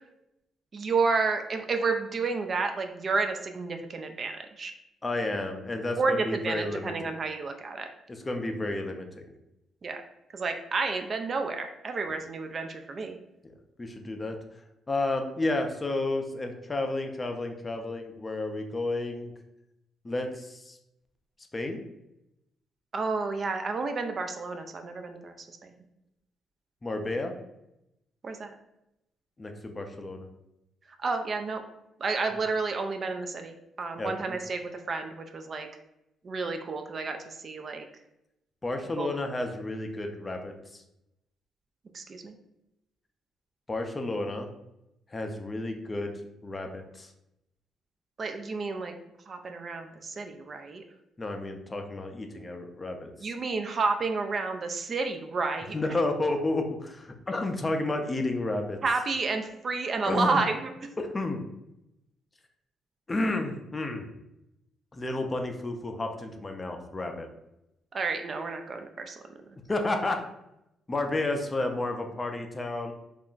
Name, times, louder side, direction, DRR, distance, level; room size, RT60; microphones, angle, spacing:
voice 1, 0.7-4.7 6.0-7.9 9.8-10.0 10.3-13.2 22.9-25.3 25.6-25.7 28.2-28.5 31.0-31.6 32.0-35.7 36.2-37.8 39.0-39.1 41.9-42.3 48.2-48.9 49.3-50.8 53.2-55.8 58.8-60.7 67.9-69.2, right 4 dB, 45° right, 6 dB, 0.3 m, -30 dB
voice 2, 5.0-7.2 8.1-9.3 13.4-13.5 13.8-14.4 14.9-19.3 20.0-20.8 21.5-21.8 26.8-27.3 29.4-30.3 34.0-34.4 38.6-40.8 43.7-44.5 45.1-46.1 46.4-47.1 51.2-53.1 55.7-58.8 60.1-60.4 61.0-61.4 63.1-64.1 64.9-67.3 69.7-70.2 70.9-72.9, left 2 dB, 25° left, 4 dB, 0.4 m, -31 dB
2.4 x 2.1 x 3.7 m, 0.85 s
cardioid pair, 90°, 0 cm